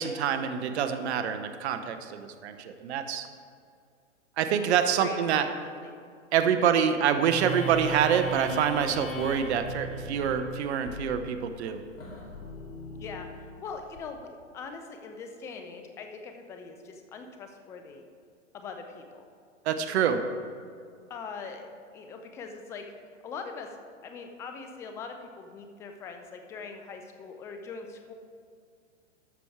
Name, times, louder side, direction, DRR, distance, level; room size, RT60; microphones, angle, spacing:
voice 1, 0.0-3.3 4.4-5.5 6.3-11.8 19.6-20.2, right 8 dB, 60° right, 9 dB, 0.9 m, -26 dB
voice 2, 5.0-5.9 13.0-13.3 13.6-14.3 14.5-18.0 18.5-19.2 19.9-20.2 21.1-21.7 21.9-22.9 23.2-23.8 24.0-28.1, left 5 dB, 10° left, 5 dB, 0.3 m, -42 dB
sound 1, 7.2-14.0, right 1 dB, 80° left, 2.4 m, -38 dB
13.0 x 6.1 x 4.6 m, 2.2 s
hypercardioid pair, 120°, 38 cm